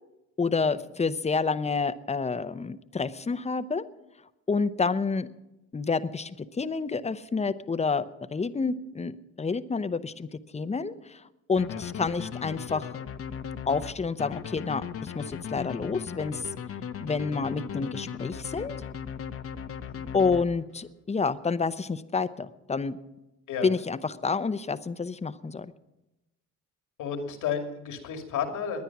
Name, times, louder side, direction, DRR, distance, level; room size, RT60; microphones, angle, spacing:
voice 1, 0.4-3.8 4.5-5.3 5.7-11.2 11.5-13.0 13.7-16.5 17.0-18.8 20.1-23.0 23.6-25.7, left 4 dB, 20° left, 13 dB, 0.8 m, -29 dB
sound 1, 11.6-20.9, left 7 dB, 50° left, 0.9 m, -37 dB
voice 2, 27.0-28.8, left 7 dB, 85° left, 5 dB, 2.5 m, -32 dB
20.0 x 10.0 x 6.0 m, 0.97 s
cardioid pair, 90°, 30 cm